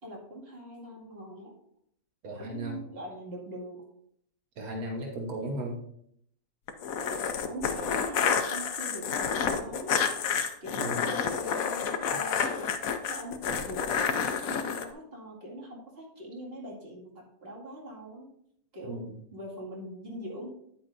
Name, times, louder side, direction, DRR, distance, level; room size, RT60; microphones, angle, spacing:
voice 1, 0.0-1.5 2.4-3.9 7.1-10.8 11.0-12.8 13.1-18.3 18.7-19.1 19.3-20.5, equal, 45° right, -3 dB, 2.4 m, -42 dB
voice 2, 2.2-2.8 4.6-5.8 10.7-11.0 18.9-19.1, right 1 dB, 85° right, 1 dB, 1.6 m, -35 dB
sound 1, 6.7-14.9, left 7 dB, 75° left, 1.2 m, -29 dB
9.4 x 8.6 x 2.6 m, 0.69 s
omnidirectional pair, 1.5 m